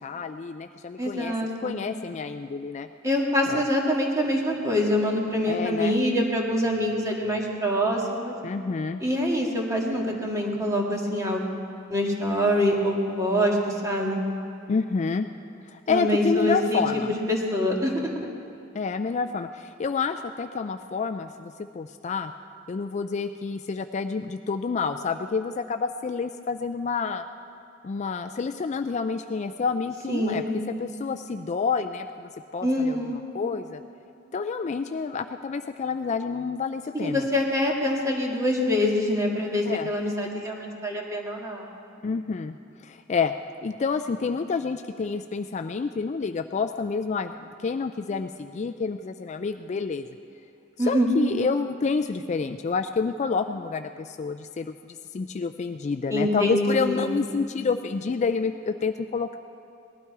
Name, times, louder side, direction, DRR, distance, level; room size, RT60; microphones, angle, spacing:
voice 1, 0.0-1.3 1.6-2.9 3.5-3.6 5.5-6.0 8.4-9.0 14.7-15.3 15.7-17.1 18.7-22.3 22.7-27.2 27.8-30.4 30.8-33.0 33.3-33.8 34.3-37.3 39.7-39.9 42.0-43.3 43.6-50.1 50.9-59.4, left 5 dB, 35° left, 8 dB, 0.3 m, -28 dB
voice 2, 1.0-1.7 3.0-8.4 9.0-11.5 11.9-14.2 15.9-18.1 30.1-30.5 32.6-33.2 36.9-41.7 50.8-51.1 56.1-57.2, left 1 dB, 15° right, -1 dB, 1.8 m, -25 dB
18.5 x 12.0 x 4.7 m, 2.7 s
head